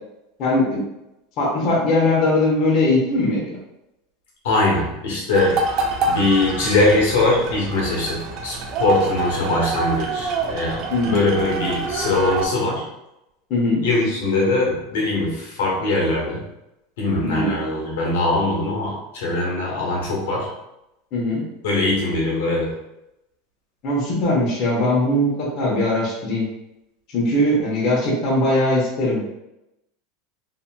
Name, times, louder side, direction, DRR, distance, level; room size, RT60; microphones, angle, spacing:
voice 1, 0.4-0.8 1.4-3.5 10.9-11.1 13.5-13.8 17.2-17.5 21.1-21.4 23.8-26.4 27.1-29.2, left 1 dB, 45° left, -5 dB, 0.9 m, -20 dB
voice 2, 4.4-5.7 6.0-12.8 13.8-16.4 17.0-20.5 21.6-22.8, left 2 dB, 90° left, -4 dB, 1.0 m, -21 dB
sound 1, 5.3-12.5, right 3 dB, 45° right, 0.4 m, -26 dB
2.7 x 2.7 x 2.2 m, 0.90 s
supercardioid pair, 145°, 0 cm